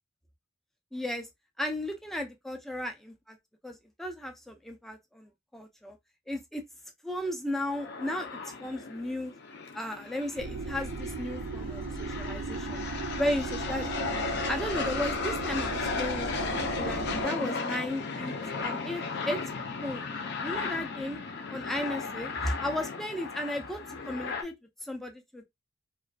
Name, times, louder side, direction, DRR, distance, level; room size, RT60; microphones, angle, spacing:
voice 1, 0.9-1.3 1.6-3.4 3.6-6.0 6.3-6.6 7.0-9.3 9.7-12.8 13.2-13.9 14.5-16.5 16.8-18.3 18.6-19.4 19.8-20.0 20.4-21.2 21.5-24.5 24.8-25.4, left 1 dB, ahead, 0.4 m, -35 dB
sound 1, 7.5-24.4, left 4 dB, 55° left, 0.5 m, -35 dB
sound 2, 10.4-17.2, right 4 dB, 80° right, 0.4 m, -36 dB
2.4 x 2.2 x 2.2 m
head